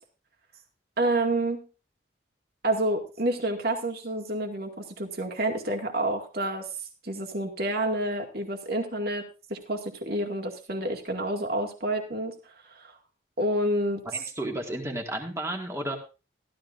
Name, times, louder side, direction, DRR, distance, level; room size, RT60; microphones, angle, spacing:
voice 1, 1.0-1.7 2.6-9.2 9.5-12.3 12.8-12.9 13.4-14.0, right 1 dB, 50° right, 1 dB, 2.1 m, -29 dB
voice 2, 14.1-16.0, right 1 dB, 15° right, 2 dB, 2.0 m, -32 dB
15.0 x 12.5 x 2.6 m, 0.31 s
head